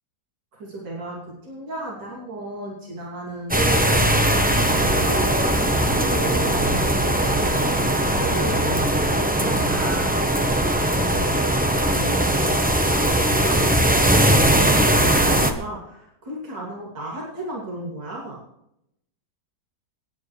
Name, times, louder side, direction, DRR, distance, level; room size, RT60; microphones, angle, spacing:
voice 1, 0.5-7.9 8.2-10.1 11.0-11.3 11.7-18.4, right 2 dB, 85° right, -4 dB, 3.5 m, -34 dB
sound 1, 3.5-15.5, right 1 dB, 10° right, 0.4 m, -20 dB
26.5 x 9.6 x 3.2 m, 0.80 s
omnidirectional pair, 1.9 m